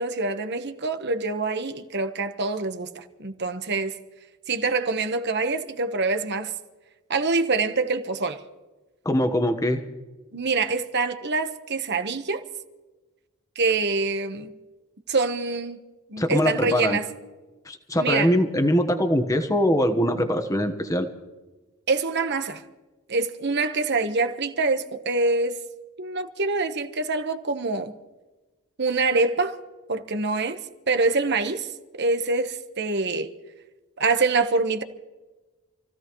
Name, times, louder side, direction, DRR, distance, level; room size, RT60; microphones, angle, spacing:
voice 1, 0.0-4.0 4.5-6.5 7.1-8.4 10.3-12.4 13.5-14.5 15.1-15.8 16.1-17.1 18.0-18.3 21.9-22.6 23.1-25.6 26.0-28.0 28.8-29.6 29.9-31.7 32.0-33.3 34.0-34.8, right 3 dB, 50° right, 1.2 m, -25 dB
voice 2, 9.0-9.8 16.2-17.0 17.7-21.1, equal, 15° left, 1.2 m, -22 dB
28.0 x 16.0 x 3.1 m
head